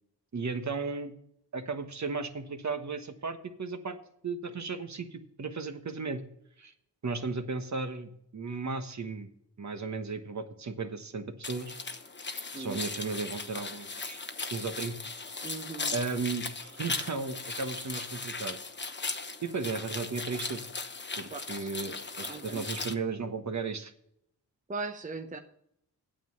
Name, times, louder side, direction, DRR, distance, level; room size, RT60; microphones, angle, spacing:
voice 1, 0.3-1.1 1.5-4.0 4.2-6.2 6.6-6.7 7.0-9.3 9.6-11.7 12.6-14.2 14.5-14.9 15.9-18.6 19.4-20.6 21.2-23.9, right 4 dB, 45° right, 8 dB, 1.2 m, -35 dB
sound 1, 11.4-22.9, left 3 dB, 30° left, 1.0 m, -38 dB
voice 2, 15.4-15.9 21.3-21.7 22.3-22.6 24.7-25.4, right 3 dB, 20° right, 6 dB, 0.8 m, -39 dB
9.1 x 7.4 x 5.8 m, 0.72 s
cardioid pair, 65°, 39 cm